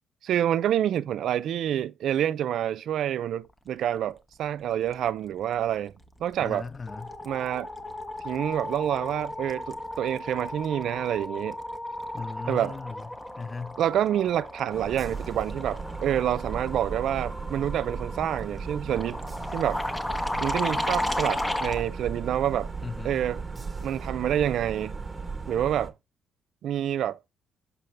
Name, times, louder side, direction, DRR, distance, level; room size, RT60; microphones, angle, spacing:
voice 1, 0.2-5.9 6.2-6.7 7.3-7.7 8.2-11.6 12.5-12.8 13.8-19.2 19.5-19.8 20.4-22.7 23.0-23.4 23.8-24.9 25.5-25.9 26.6-27.2, right 10 dB, 75° right, 0.3 m, -27 dB
sound 1, 6.0-6.3 6.6-21.8, left 1 dB, 10° left, 1.0 m, -35 dB
voice 2, 6.4-7.2 12.1-13.1 13.4-13.8 22.8-23.2, left 4 dB, 30° left, 0.4 m, -37 dB
sound 2, 14.7-25.9, right 4 dB, 25° right, 1.1 m, -36 dB
6.4 x 5.3 x 3.3 m
cardioid pair, 90°, 0 cm